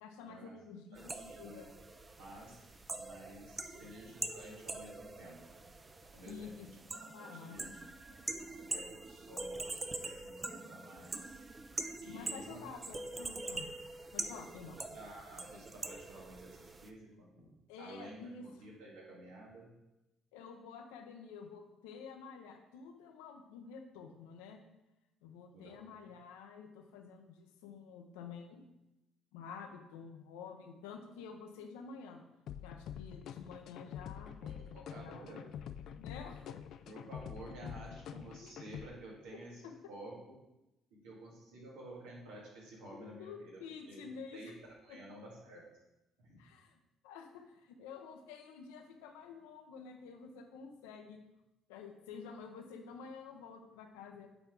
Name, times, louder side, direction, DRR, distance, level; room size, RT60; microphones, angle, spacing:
voice 1, 0.0-1.7 3.7-4.1 6.2-6.7 7.1-7.7 12.0-13.7 14.1-14.8 17.7-18.4 20.3-24.6 25.2-28.6 29.3-32.2 32.6-34.3 35.0-35.4 36.0-36.6 39.6-39.7 43.0-44.4 44.9-45.0 46.4-46.7 47.0-51.2 51.7-54.3, left 6 dB, 90° left, 4 dB, 0.8 m, -50 dB
voice 2, 0.9-1.7 2.2-5.4 6.1-11.4 12.0-12.9 14.9-19.7 25.5-26.1 34.4-35.5 36.9-39.6 39.9-40.2 40.9-45.7 46.2-46.4, right 1 dB, 85° right, -4 dB, 2.0 m, -52 dB
sound 1, 1.0-16.9, right 2 dB, 30° right, 0.6 m, -44 dB
sound 2, 32.5-38.9, left 9 dB, 65° left, 0.3 m, -46 dB
8.0 x 4.4 x 3.8 m, 0.94 s
supercardioid pair, 65°, 0 cm